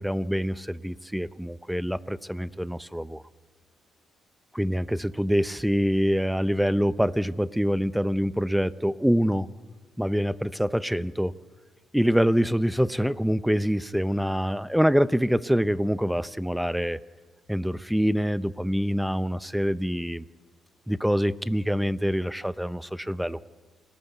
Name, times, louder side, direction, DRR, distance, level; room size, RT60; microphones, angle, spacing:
voice 1, 0.0-3.2 4.5-9.5 10.0-11.4 11.9-17.0 17.5-20.2 20.9-23.4, equal, ahead, 15 dB, 0.8 m, -25 dB
29.0 x 19.0 x 8.1 m, 1.4 s
cardioid pair, 90°, 0 cm